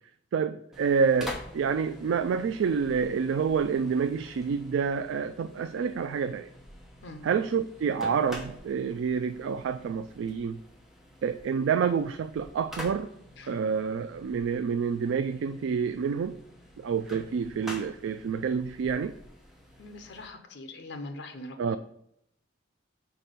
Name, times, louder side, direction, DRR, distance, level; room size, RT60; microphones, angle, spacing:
voice 1, 0.3-6.5 7.2-10.6 11.2-13.1 13.5-16.4 16.8-19.1 21.6-21.8, right 6 dB, 80° right, 0.3 m, -28 dB
sound 1, 0.7-20.3, equal, ahead, 0.9 m, -47 dB
voice 2, 19.8-21.8, left 2 dB, 65° left, 0.8 m, -42 dB
5.8 x 4.2 x 5.2 m
head